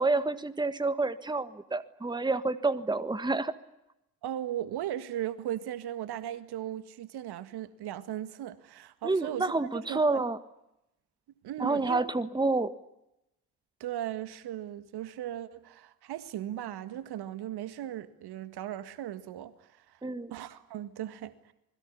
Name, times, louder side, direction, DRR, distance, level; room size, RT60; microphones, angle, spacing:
voice 1, 0.0-3.5 9.0-10.4 11.6-12.7 20.0-20.3, right 3 dB, 10° right, 1.5 m, -28 dB
voice 2, 4.2-9.5 9.9-10.2 11.4-12.1 13.8-20.0 20.3-21.5, right 12 dB, 55° right, 1.8 m, -37 dB
27.0 x 21.5 x 9.8 m
figure-of-eight pair, 45°, 46 cm